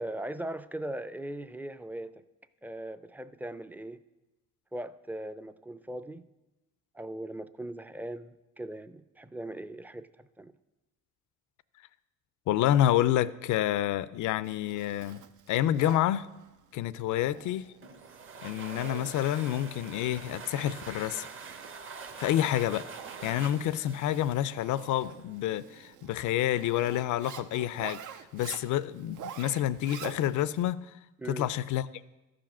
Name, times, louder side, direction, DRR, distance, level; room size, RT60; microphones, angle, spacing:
voice 1, 0.0-2.2 2.6-4.0 4.7-6.2 6.9-10.5 31.2-31.5, right 1 dB, 5° right, 13 dB, 0.4 m, -39 dB
voice 2, 12.5-15.2 15.5-16.3 16.7-17.6 18.4-21.3 22.2-22.9 23.2-28.0 28.3-30.9 31.3-32.0, left 12 dB, 80° left, 17 dB, 0.5 m, -28 dB
Zipper (clothing), 14.4-30.6, right 9 dB, 80° right, 0.6 m, -48 dB
sound 1, 17.8-25.3, right 5 dB, 40° right, 0.9 m, -45 dB
13.5 x 5.1 x 5.9 m, 1.0 s
cardioid pair, 90°, 30 cm